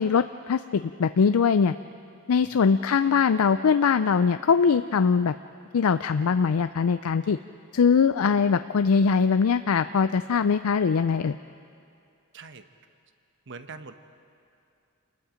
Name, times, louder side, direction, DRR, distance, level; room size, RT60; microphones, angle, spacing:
voice 1, 0.0-1.7 2.3-5.3 5.7-7.4 7.7-11.4, left 6 dB, 70° left, 11 dB, 0.4 m, -22 dB
voice 2, 12.3-12.6 13.5-13.9, right 4 dB, 55° right, 9 dB, 1.0 m, -42 dB
28.5 x 20.0 x 5.1 m, 2.5 s
head